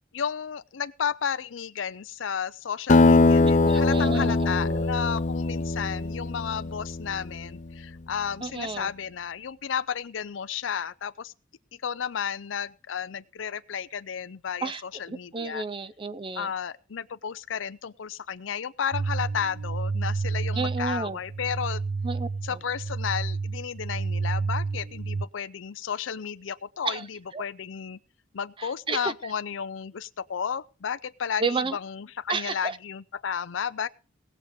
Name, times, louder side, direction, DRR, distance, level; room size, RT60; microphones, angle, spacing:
voice 1, 0.1-11.3 11.8-15.6 16.3-21.8 22.4-28.0 28.3-33.9, left 7 dB, 85° left, 0.5 m, -33 dB
Acoustic guitar, 2.9-7.7, left 3 dB, 40° left, 0.7 m, -22 dB
voice 2, 3.4-4.3 4.6-4.8 8.4-8.9 14.6-14.8 15.1-16.5 20.6-21.2 22.0-22.6 26.8-27.0 27.3-27.4 28.9-29.1 31.4-31.8 32.3-32.8, right 4 dB, 25° right, 0.5 m, -31 dB
sound 1, 18.9-25.3, right 4 dB, 75° right, 0.5 m, -30 dB
18.5 x 6.8 x 5.0 m
head